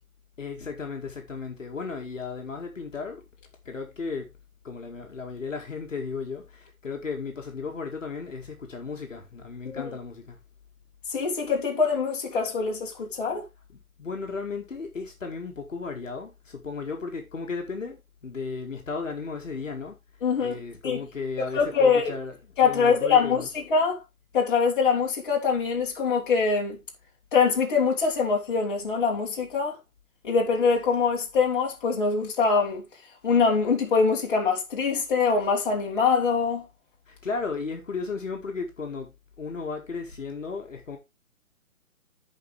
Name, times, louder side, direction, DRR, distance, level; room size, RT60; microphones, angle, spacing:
voice 1, 0.4-3.2 3.7-4.3 4.6-10.4 13.7-20.0 20.4-23.5 37.1-41.0, left 4 dB, 60° left, 2.1 m, -35 dB
voice 2, 11.1-13.5 20.2-21.0 21.5-22.2 22.6-24.0 24.3-26.8 27.3-29.8 30.2-32.8 33.2-36.6, left 5 dB, 35° left, 2.3 m, -24 dB
14.0 x 5.1 x 3.3 m
figure-of-eight pair, 135°, 42 cm